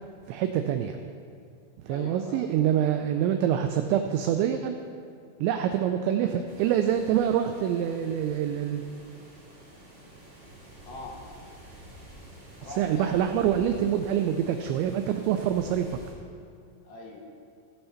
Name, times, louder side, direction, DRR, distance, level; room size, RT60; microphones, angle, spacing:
voice 1, 0.3-1.0 1.8-4.8 5.4-8.8 12.8-15.9, right 10 dB, 85° right, 7 dB, 2.6 m, -26 dB
voice 2, 1.9-2.5 10.9-11.3 12.6-13.3 16.8-17.2, left 2 dB, 70° left, -1 dB, 3.1 m, -41 dB
sound 1, 6.4-16.1, right 1 dB, 50° right, 0.7 m, -48 dB
16.5 x 5.5 x 5.7 m, 2.3 s
omnidirectional pair, 5.7 m